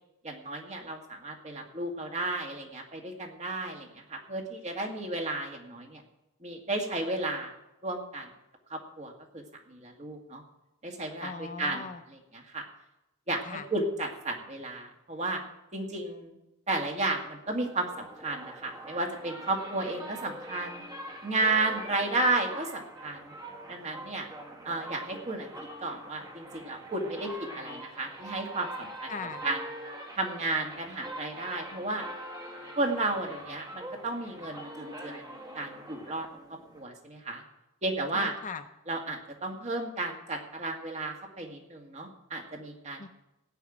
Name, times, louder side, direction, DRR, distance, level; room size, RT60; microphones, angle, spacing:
voice 1, 0.2-6.0 6.4-7.5 7.8-8.3 8.7-10.4 10.8-12.6 13.3-15.4 15.7-16.4 16.7-20.8 21.2-23.3 23.7-24.3 24.7-25.5 25.8-29.1 29.4-29.6 30.2-32.0 32.8-35.2 35.6-36.3 36.7-37.4 37.8-38.3 38.9-43.0, right 2 dB, 35° right, 2 dB, 1.9 m, -33 dB
voice 2, 11.2-12.0 13.4-13.7 29.1-29.5 38.1-38.7 43.0-43.1, left 5 dB, 40° left, 8 dB, 0.7 m, -39 dB
sound 1, 17.5-36.8, right 1 dB, 15° right, 1.6 m, -44 dB
16.0 x 5.7 x 8.9 m, 0.93 s
head